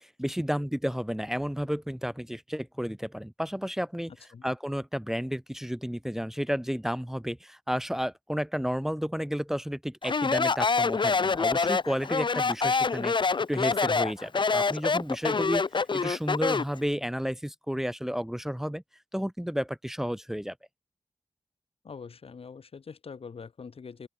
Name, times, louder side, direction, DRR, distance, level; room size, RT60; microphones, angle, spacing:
voice 1, 0.0-4.1 4.4-15.6 15.9-18.8 19.1-20.5, equal, 5° right, 1.1 m, -32 dB
Speech, 10.0-16.8, left 4 dB, 55° left, 1.0 m, -26 dB
voice 2, 21.8-24.1, left 5 dB, 90° left, 4.6 m, -43 dB
open air
wide cardioid pair, 95°, 10 cm